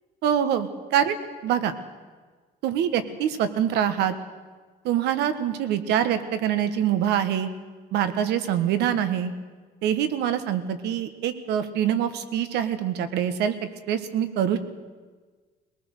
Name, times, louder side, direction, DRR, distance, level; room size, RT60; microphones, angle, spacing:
voice 1, 0.2-1.1 1.4-1.8 2.6-4.1 4.8-7.5 7.9-9.3 9.8-13.5 13.9-14.6, right 9 dB, 85° right, 10 dB, 1.5 m, -24 dB
21.5 x 19.0 x 6.6 m, 1.4 s
cardioid pair, 110°, 17 cm